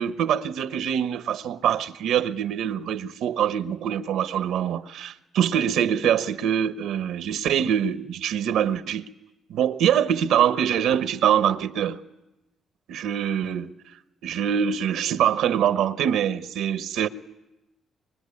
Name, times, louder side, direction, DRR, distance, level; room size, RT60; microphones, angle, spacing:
voice 1, 0.0-9.1 9.5-12.0 12.9-13.7 14.2-17.1, right 9 dB, 85° right, 1.0 m, -24 dB
24.5 x 22.0 x 9.8 m
cardioid pair, 90°, 0 cm